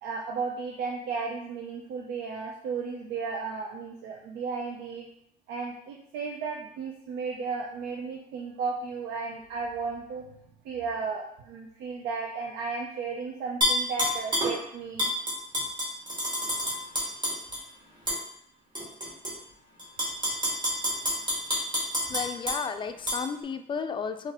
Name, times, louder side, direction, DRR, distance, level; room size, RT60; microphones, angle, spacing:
voice 1, 0.0-5.0 5.5-10.2 10.6-15.1, right 5 dB, 85° right, 0 dB, 0.5 m, -34 dB
Tap / Glass, 13.6-14.5 15.0-17.6 18.1-18.2 18.7-19.3 19.8-22.6 23.1-23.2, left 1 dB, 25° right, 1.6 m, -28 dB
voice 2, 22.1-24.3, left 6 dB, 30° left, 9 dB, 0.3 m, -33 dB
4.5 x 2.9 x 2.9 m, 0.73 s
cardioid pair, 110°, 17 cm